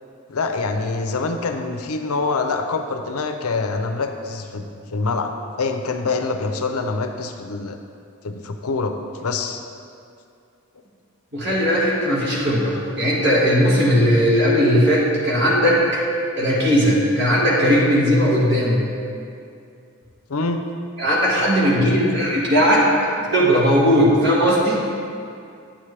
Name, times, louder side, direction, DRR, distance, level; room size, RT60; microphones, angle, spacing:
voice 1, 0.3-5.3 5.6-7.8 8.2-9.0 9.2-9.6 20.3-20.6 22.0-22.2, left 3 dB, 85° left, 6 dB, 0.6 m, -25 dB
voice 2, 11.3-15.8 16.4-18.9 21.0-22.8 23.3-24.8, equal, 50° right, -5 dB, 1.6 m, -18 dB
8.9 x 7.4 x 3.3 m, 2.4 s
head